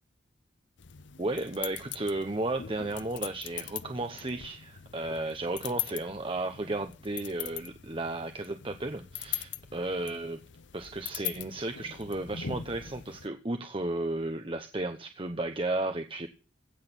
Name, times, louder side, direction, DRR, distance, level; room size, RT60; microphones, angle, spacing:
sound 1, 0.8-13.3, left 10 dB, 75° left, 0.7 m, -41 dB
voice 1, 1.2-10.4 10.7-16.3, right 2 dB, 30° right, 6 dB, 1.0 m, -34 dB
16.5 x 6.6 x 8.9 m, 0.35 s
head